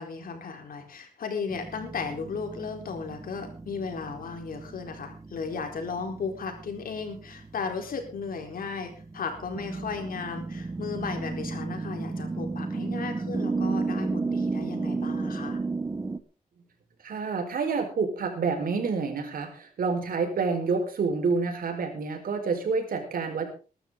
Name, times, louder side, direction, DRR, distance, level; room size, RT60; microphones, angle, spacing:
voice 1, 0.0-15.6, left 5 dB, 80° left, 4 dB, 4.1 m, -35 dB
sound 1, 1.5-16.2, right 3 dB, 20° right, 1.2 m, -34 dB
voice 2, 17.0-23.5, right 4 dB, 80° right, 4 dB, 4.9 m, -28 dB
21.0 x 12.5 x 3.9 m, 0.35 s
wide cardioid pair, 170°, 15 cm